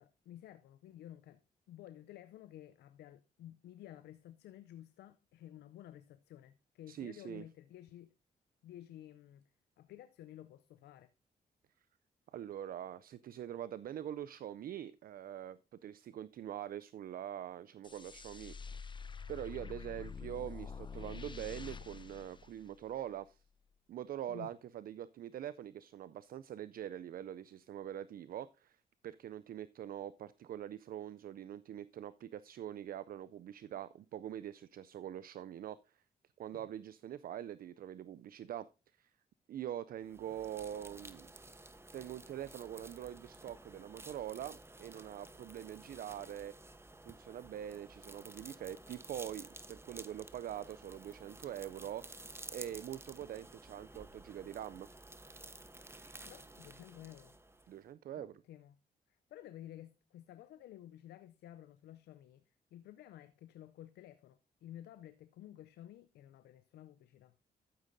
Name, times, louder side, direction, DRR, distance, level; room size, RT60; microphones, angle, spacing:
voice 1, 0.0-1.4 1.7-8.1 8.6-9.5 9.8-11.1 24.3-24.5 36.5-36.7 55.6-56.0 56.3-57.4 58.1-58.8 59.3-67.4, left 12 dB, 85° left, 0.5 m, -53 dB
voice 2, 6.9-7.4 12.3-18.9 19.3-23.4 23.9-36.0 36.4-38.7 39.0-39.1 39.5-41.3 41.9-46.5 47.0-52.0 52.5-54.9 57.7-58.3, right 11 dB, 60° right, 0.4 m, -44 dB
sound 1, 17.8-23.2, left 5 dB, 30° left, 0.7 m, -47 dB
sound 2, 40.0-57.8, right 2 dB, 15° right, 0.9 m, -53 dB
12.0 x 9.0 x 2.6 m
supercardioid pair, 60°, 17 cm